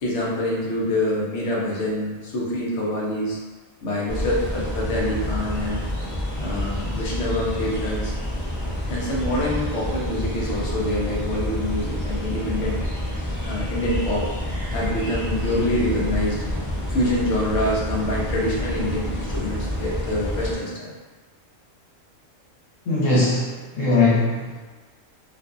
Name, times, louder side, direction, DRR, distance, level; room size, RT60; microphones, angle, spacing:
voice 1, 0.0-3.4 3.8-5.8 6.4-8.1 8.9-12.8 13.4-14.3 14.7-16.4 16.9-20.9, left 1 dB, 65° left, -5 dB, 1.0 m, -26 dB
sound 1, 4.1-20.5, left 1 dB, 20° left, 0.5 m, -28 dB
voice 2, 22.9-24.6, left 2 dB, 90° left, -6 dB, 1.2 m, -20 dB
2.5 x 2.4 x 2.4 m, 1.3 s
omnidirectional pair, 1.3 m